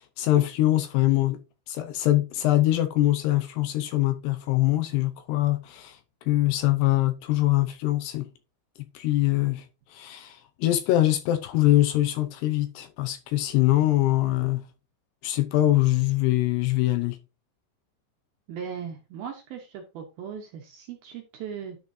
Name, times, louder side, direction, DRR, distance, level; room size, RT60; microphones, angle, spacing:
voice 1, 0.2-1.4 1.7-6.0 6.3-8.3 8.9-9.6 9.9-14.6 15.2-17.2, left 15 dB, 75° left, 2.6 m, -23 dB
voice 2, 18.5-21.8, right 7 dB, 70° right, 2.5 m, -38 dB
10.5 x 5.9 x 2.7 m
omnidirectional pair, 5.3 m